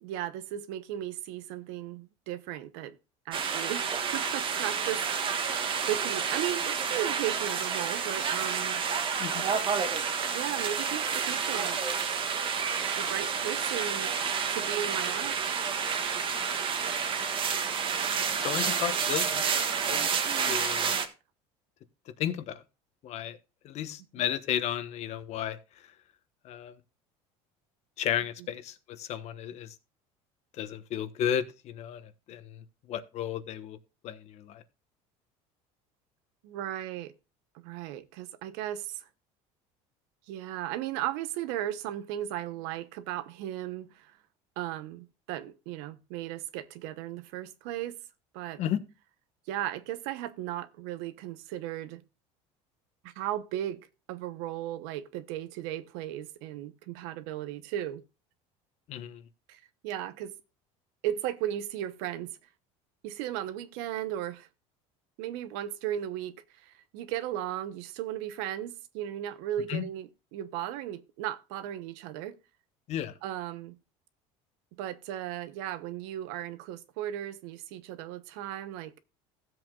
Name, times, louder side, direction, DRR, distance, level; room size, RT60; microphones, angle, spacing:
voice 1, 0.0-3.0 3.3-5.1 5.9-8.8 10.3-11.8 13.0-14.2 14.5-15.4 18.0-18.3 20.9-21.1 36.4-37.1 37.6-39.0 40.3-44.1 44.6-48.0 48.3-48.6 49.5-52.0 53.0-53.8 54.1-58.0 59.5-60.4 61.0-62.3 63.0-64.5 65.2-66.3 66.6-72.4 73.2-73.8 74.8-78.9, right 12 dB, 80° right, 0.9 m, -36 dB
sound 1, 3.3-21.1, right 6 dB, 35° right, 1.4 m, -29 dB
voice 2, 9.2-9.5 18.4-19.4 19.9-20.1 20.5-21.0 22.2-22.6 23.0-23.4 23.6-25.6 26.4-26.7 28.0-29.7 30.6-33.8 34.0-34.6 48.6-48.8 58.9-59.2 69.7-69.8 72.9-73.1, left 10 dB, 50° left, 1.2 m, -33 dB
16.0 x 7.8 x 2.4 m
cardioid pair, 130°, 14 cm